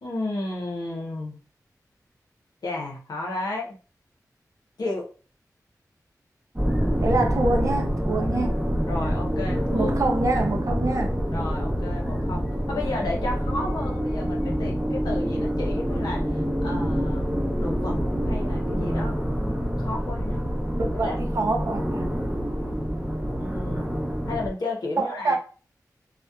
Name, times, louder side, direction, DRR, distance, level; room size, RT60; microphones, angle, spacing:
voice 1, 0.0-1.4 2.6-3.7 4.8-5.1 8.9-9.9 11.3-17.3 17.6-18.0 18.3-19.2 19.8-20.4 21.0-21.1 23.2-25.3, left 2 dB, 80° left, 0.7 m, -33 dB
sound 1, 6.6-24.5, equal, 15° right, 0.7 m, -26 dB
voice 2, 7.0-8.6 9.7-11.2 20.8-22.1 25.0-25.3, right 2 dB, 55° right, 0.6 m, -26 dB
2.7 x 2.1 x 2.2 m
wide cardioid pair, 75°, 7 cm